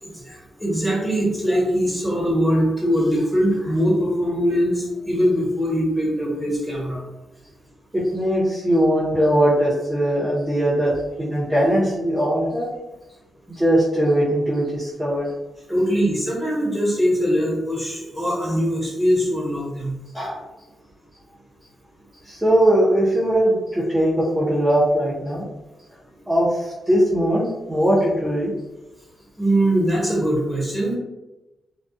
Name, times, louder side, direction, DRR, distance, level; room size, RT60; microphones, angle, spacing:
voice 1, 0.0-7.0 15.7-20.4 29.4-31.0, equal, 5° left, -5 dB, 1.1 m, -22 dB
voice 2, 7.9-12.7 13.5-15.3 22.2-25.5 26.3-28.5, right 1 dB, 15° right, -10 dB, 0.7 m, -20 dB
2.3 x 2.2 x 2.5 m, 1.0 s
cardioid pair, 85°, 0 cm